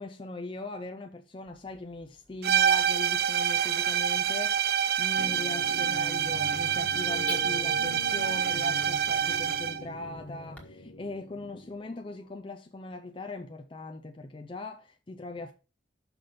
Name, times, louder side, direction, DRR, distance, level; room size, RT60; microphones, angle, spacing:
voice 1, 0.0-15.5, left 2 dB, 25° left, 0.5 m, -40 dB
Car / Alarm, 1.4-10.6, left 2 dB, 5° left, 1.4 m, -50 dB
sound 1, 2.4-9.8, right 8 dB, 50° right, 0.4 m, -27 dB
sound 2, 5.2-12.3, left 2 dB, 60° left, 1.2 m, -43 dB
5.9 x 5.2 x 6.7 m
head